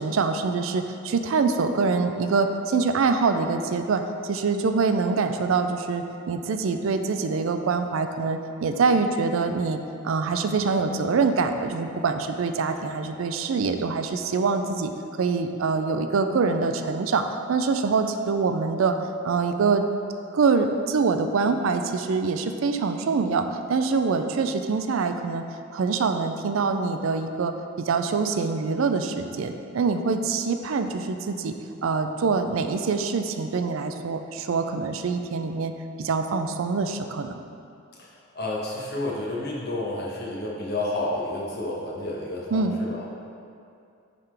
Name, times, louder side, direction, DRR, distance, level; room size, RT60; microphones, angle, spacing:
voice 1, 0.0-9.8 10.0-14.9 15.2-19.0 19.2-19.9 20.3-25.4 25.7-31.6 31.8-35.7 36.0-37.4 42.5-42.8, right 4 dB, 70° right, 7 dB, 0.4 m, -25 dB
voice 2, 38.0-43.0, left 2 dB, 50° left, -4 dB, 1.1 m, -30 dB
10.0 x 3.7 x 3.3 m, 2.5 s
head